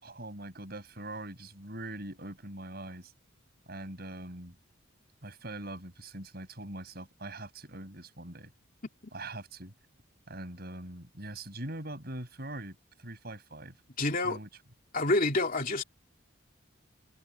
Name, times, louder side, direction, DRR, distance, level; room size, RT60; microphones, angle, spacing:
voice 1, 0.0-3.1 3.7-4.6 5.2-8.5 9.1-9.7 10.3-13.8 14.2-14.5, right 1 dB, 50° right, 6.3 m, -42 dB
voice 2, 14.0-14.4 14.9-15.8, left 2 dB, 45° left, 2.9 m, -27 dB
head